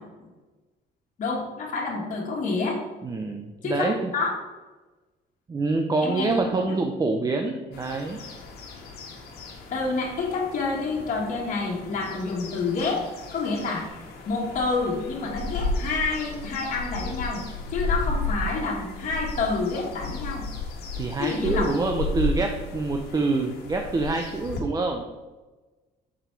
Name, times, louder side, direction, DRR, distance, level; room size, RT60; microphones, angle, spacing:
voice 1, 1.2-2.8 3.6-4.3 6.0-6.3 9.7-13.9 14.3-17.4 17.7-20.4 21.2-21.7, left 4 dB, 50° left, -4 dB, 1.7 m, -28 dB
voice 2, 3.0-4.1 5.5-8.2 21.0-25.1, right 3 dB, 20° right, 3 dB, 0.6 m, -26 dB
sound 1, 7.7-24.6, left 2 dB, 70° left, 1.5 m, -34 dB
6.1 x 4.1 x 4.5 m, 1.2 s
cardioid pair, 110°, 17 cm